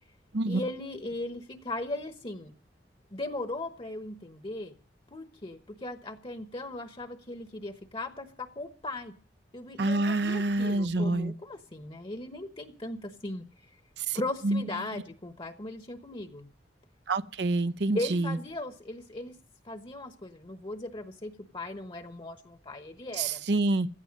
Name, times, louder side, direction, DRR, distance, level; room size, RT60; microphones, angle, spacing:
voice 1, 0.4-2.5 3.1-4.7 5.1-9.1 9.5-13.5 14.1-16.5 17.9-19.4 19.6-23.4, left 2 dB, 30° left, 1.1 m, -38 dB
voice 2, 9.8-11.3 14.0-14.6 17.1-18.4 23.1-23.9, right 2 dB, 70° right, 0.8 m, -27 dB
16.5 x 13.0 x 5.3 m
head